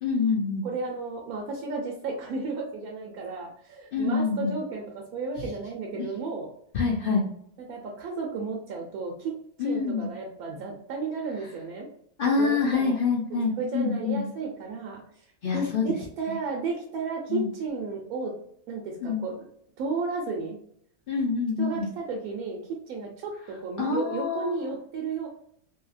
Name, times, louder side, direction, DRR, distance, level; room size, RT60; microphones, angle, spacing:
voice 1, 0.0-0.7 3.9-4.6 6.0-6.1 6.7-7.3 9.6-10.1 12.2-14.3 15.4-15.8 17.3-17.5 19.0-19.2 21.1-21.9 23.8-24.7, left 4 dB, 70° left, -2 dB, 0.5 m, -26 dB
voice 2, 0.6-6.5 7.6-9.4 9.6-11.9 12.4-13.0 13.5-18.3 18.7-19.5 19.8-20.6 21.6-25.3, right 4 dB, 80° right, 0 dB, 1.1 m, -33 dB
2.8 x 2.7 x 2.4 m, 0.68 s
omnidirectional pair, 1.6 m